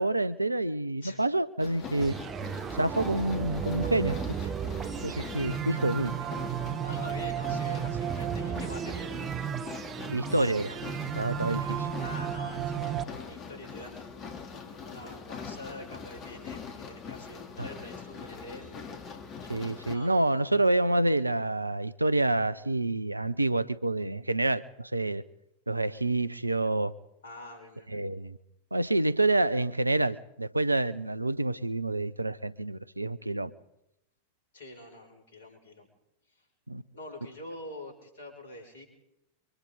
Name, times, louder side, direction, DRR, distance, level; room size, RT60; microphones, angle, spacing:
voice 1, 0.0-2.1 2.7-4.2 5.0-6.1 10.1-10.8 11.2-11.9 17.6-17.7 19.5-25.2 25.7-26.9 27.9-28.4 28.7-33.5 36.7-36.8, right 2 dB, 85° right, 0.8 m, -28 dB
sound 1, 1.6-20.0, left 5 dB, 30° left, 3.1 m, -43 dB
sound 2, 2.0-13.0, right 8 dB, 25° right, 1.2 m, -34 dB
voice 2, 6.8-9.2 12.0-13.0 13.2-14.1 14.7-18.8 19.9-20.6 27.2-27.9 34.5-35.9 36.3-36.5 36.9-38.9, left 1 dB, 65° left, 6.6 m, -45 dB
30.0 x 24.5 x 4.0 m
figure-of-eight pair, 90°, 0 cm